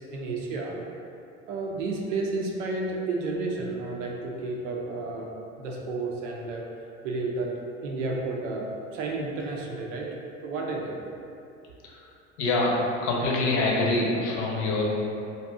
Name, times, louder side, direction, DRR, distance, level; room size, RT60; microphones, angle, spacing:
voice 1, 0.1-0.8 1.5-5.3 5.6-6.7 7.0-7.5 7.8-10.1 10.4-11.0, right 3 dB, 75° right, -1 dB, 0.7 m, -31 dB
voice 2, 12.4-14.8, left 2 dB, 55° left, -2 dB, 0.8 m, -25 dB
2.7 x 2.3 x 3.4 m, 2.6 s
hypercardioid pair, 80°, 38 cm